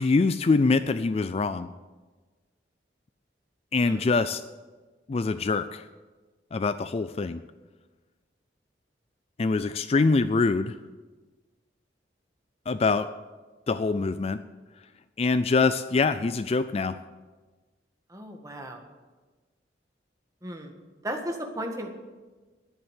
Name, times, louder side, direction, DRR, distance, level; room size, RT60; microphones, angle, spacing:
voice 1, 0.0-1.7 3.7-4.4 5.1-5.8 6.5-7.4 9.4-10.7 12.7-13.1 13.7-14.4 15.2-17.0, left 4 dB, 35° left, 12 dB, 0.3 m, -24 dB
voice 2, 18.1-18.8 20.4-20.7 21.0-21.9, right 1 dB, 20° right, 3 dB, 1.6 m, -35 dB
11.0 x 9.8 x 8.2 m, 1.3 s
head